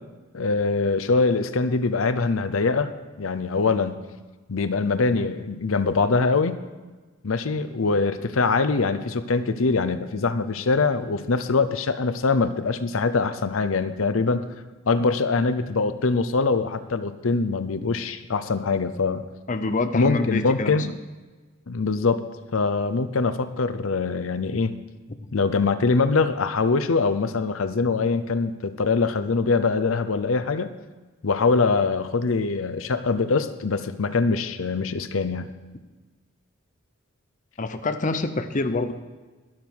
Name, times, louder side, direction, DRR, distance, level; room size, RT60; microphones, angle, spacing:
voice 1, 0.3-2.9 3.2-4.0 4.5-6.6 7.2-14.5 14.9-19.3 19.9-20.9 21.7-22.2 22.5-24.7 25.3-30.7 31.2-35.5, left 4 dB, 90° left, 12 dB, 0.7 m, -23 dB
voice 2, 19.5-20.8 25.2-25.3 37.6-38.9, left 3 dB, 40° left, 8 dB, 0.6 m, -26 dB
12.0 x 11.5 x 4.6 m, 1.3 s
head